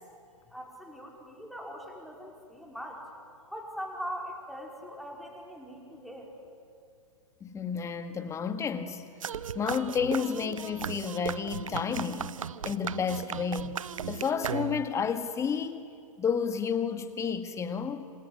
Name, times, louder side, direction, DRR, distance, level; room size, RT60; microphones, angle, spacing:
voice 1, 0.5-3.0 3.5-6.3, equal, ahead, -1 dB, 4.7 m, -41 dB
voice 2, 7.4-9.1 9.5-12.4 12.6-13.8 14.1-15.9 16.2-18.0, left 6 dB, 15° left, 10 dB, 1.7 m, -31 dB
sound 1, 9.2-15.0, right 8 dB, 70° right, 0.8 m, -36 dB
27.0 x 25.0 x 8.6 m, 2.3 s
figure-of-eight pair, 110°, 17 cm